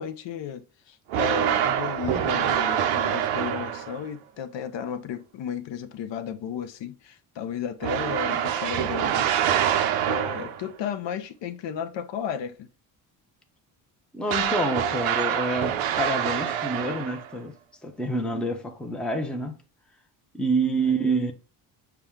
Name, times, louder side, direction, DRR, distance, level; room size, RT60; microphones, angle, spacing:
voice 1, 0.0-9.7 10.1-12.7 20.9-21.2, left 8 dB, 60° left, 0.6 m, -34 dB
sound 1, 1.1-4.1 7.8-10.7 14.3-17.4, right 10 dB, 80° right, 0.7 m, -26 dB
voice 2, 14.1-17.6 17.8-19.6 20.3-21.3, right 2 dB, ahead, 0.6 m, -27 dB
5.7 x 2.2 x 3.5 m
cardioid pair, 90°, 50 cm